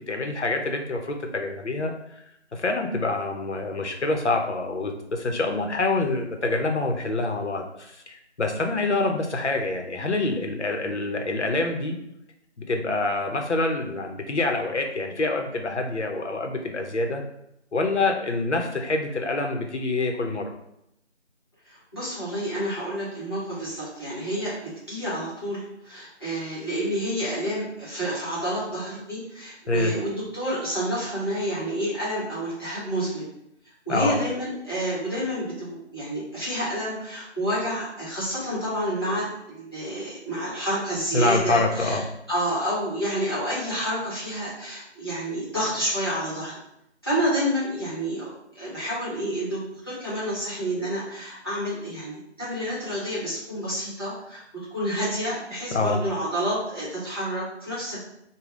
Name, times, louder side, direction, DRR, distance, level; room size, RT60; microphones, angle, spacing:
voice 1, 0.1-1.9 2.5-12.0 12.6-17.2 17.7-20.5 29.7-30.0 33.9-34.2 41.1-42.0 55.7-56.0, left 2 dB, 70° left, 3 dB, 0.8 m, -26 dB
voice 2, 21.6-33.3 33.9-42.0 42.3-46.6 47.0-48.3 48.5-54.4 54.7-58.0, equal, 20° left, -10 dB, 1.0 m, -29 dB
3.4 x 2.2 x 3.7 m, 0.79 s
figure-of-eight pair, 170°, 35 cm